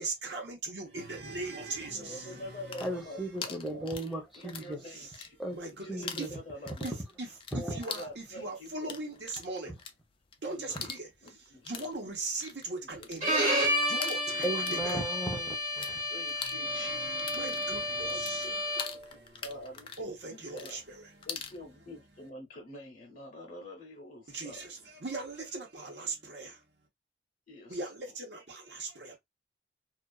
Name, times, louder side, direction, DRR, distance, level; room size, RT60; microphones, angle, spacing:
voice 1, 0.0-3.2 4.4-5.1 5.5-6.3 6.8-6.9 7.2-7.3 7.5-9.7 10.4-15.0 16.4-19.4 20.0-21.3 24.3-26.6 27.7-29.2, right 3 dB, 70° right, 1.0 m, -40 dB
voice 2, 2.0-3.9 4.4-5.4 5.7-7.0 7.5-9.0 9.6-9.7 10.4-10.8 11.2-11.7 12.8-13.5 14.3-14.4 14.7-14.9 16.1-17.1 18.0-18.7 19.1-19.9 20.5-20.8 21.3-24.7 26.2-26.3 27.5-27.9, left 1 dB, 50° left, 0.7 m, -46 dB
sound 1, 2.5-4.7 5.0-5.7 6.0-15.9 16.2-21.6, left 6 dB, 30° left, 0.3 m, -43 dB
voice 3, 2.8-4.8 5.4-5.6 5.9-6.3 7.5-7.6 14.4-16.0, right 1 dB, ahead, 0.7 m, -35 dB
Bowed string instrument, 13.2-19.0, equal, 45° right, 1.2 m, -31 dB
2.4 x 2.3 x 2.3 m
head